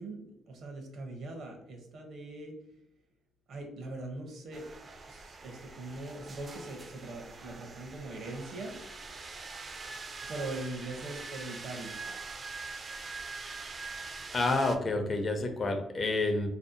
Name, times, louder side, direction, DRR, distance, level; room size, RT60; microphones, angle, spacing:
voice 1, 0.0-2.5 3.5-4.7 5.1-8.8 10.3-12.0, right 2 dB, 70° right, 3 dB, 0.7 m, -41 dB
sound 1, 4.5-14.8, right 4 dB, 40° right, 0.3 m, -44 dB
voice 2, 14.3-16.5, left 2 dB, 40° left, 5 dB, 0.5 m, -29 dB
2.6 x 2.3 x 2.5 m, 0.78 s
cardioid pair, 90°, 0 cm